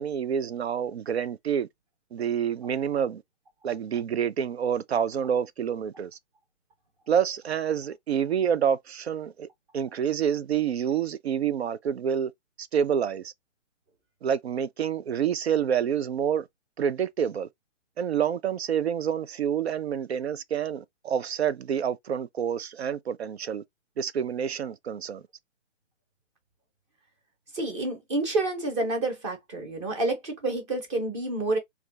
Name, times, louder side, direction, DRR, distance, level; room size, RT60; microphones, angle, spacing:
voice 1, 0.0-1.7 2.1-3.2 3.6-6.1 7.1-9.5 9.7-12.3 12.6-13.3 14.2-16.5 16.8-17.5 18.0-23.6 24.0-25.2, right 8 dB, 60° right, 0.4 m, -28 dB
voice 2, 27.5-31.6, right 2 dB, 25° right, 0.9 m, -28 dB
3.2 x 2.4 x 3.8 m
hypercardioid pair, 160°, 37 cm